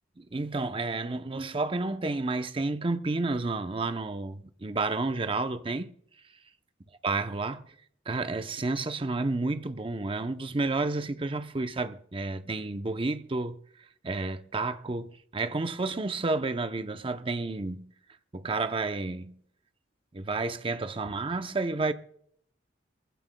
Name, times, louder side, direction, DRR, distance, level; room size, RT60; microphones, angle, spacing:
voice 1, 0.2-5.9 7.0-7.6 8.1-13.6 14.0-17.9 18.3-19.4 20.1-21.9, right 3 dB, 30° right, 0.6 m, -31 dB
22.5 x 15.0 x 2.2 m
head